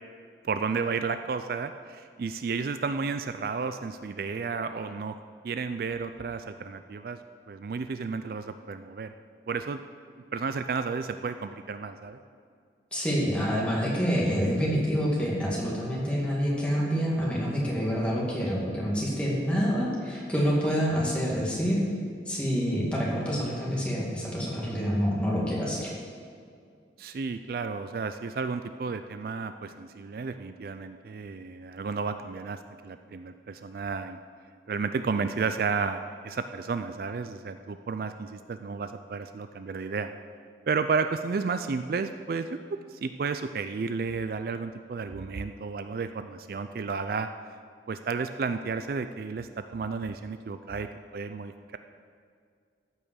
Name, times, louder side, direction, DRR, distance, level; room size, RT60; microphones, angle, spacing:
voice 1, 0.4-5.2 5.4-7.2 7.5-9.1 9.5-9.8 10.3-12.2 27.0-34.2 34.7-40.1 40.7-47.3 47.9-50.9 51.1-51.8, right 5 dB, 55° right, 9 dB, 0.4 m, -32 dB
voice 2, 12.9-21.8 22.3-25.9, equal, 5° left, -5 dB, 2.3 m, -27 dB
14.0 x 5.5 x 6.4 m, 2.2 s
head